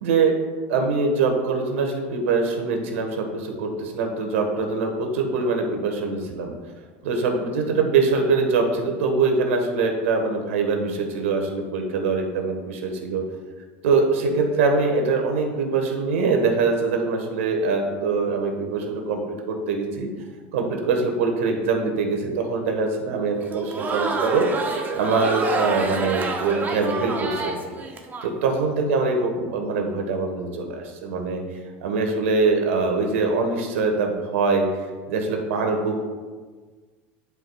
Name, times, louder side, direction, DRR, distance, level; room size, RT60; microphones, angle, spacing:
voice 1, 0.0-0.3 0.7-6.5 7.0-13.2 13.8-19.2 19.5-20.1 20.5-27.8 28.2-31.4 31.8-34.6 35.1-36.0, right 4 dB, 85° right, 3 dB, 1.3 m, -23 dB
Crowd, 23.4-28.3, right 3 dB, 25° right, 0.9 m, -28 dB
10.5 x 4.8 x 2.3 m, 1.4 s
supercardioid pair, 100°, 7 cm